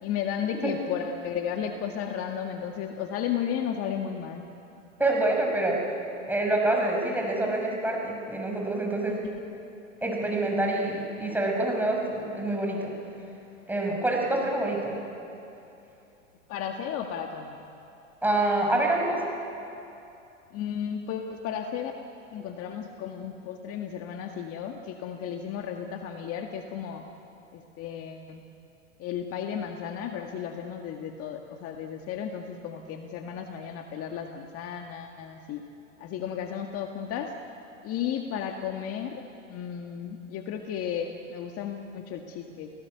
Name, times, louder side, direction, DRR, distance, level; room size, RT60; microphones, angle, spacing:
voice 1, 0.0-4.4 9.1-9.6 16.5-17.6 20.5-21.9 22.3-27.0 27.5-28.4 29.0-35.6 36.0-37.3 37.8-39.2 39.5-42.7, left 8 dB, 35° left, 4 dB, 1.8 m, -34 dB
voice 2, 5.0-5.8 6.3-9.2 10.0-12.9 13.7-15.0 18.2-19.2, right 2 dB, 5° right, 0 dB, 6.1 m, -26 dB
30.0 x 18.0 x 9.6 m, 2.8 s
hypercardioid pair, 110°, 39 cm